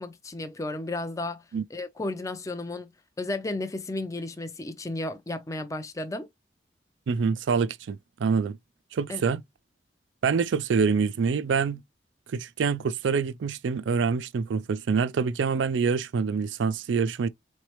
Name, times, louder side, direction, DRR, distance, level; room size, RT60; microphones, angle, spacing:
voice 1, 0.0-1.4 1.7-2.9 3.2-6.3 9.1-9.2, left 2 dB, 20° left, 0.5 m, -33 dB
voice 2, 7.1-8.6 8.9-9.4 10.2-11.8 12.3-17.3, right 5 dB, 85° right, 0.4 m, -26 dB
4.0 x 3.2 x 2.9 m
head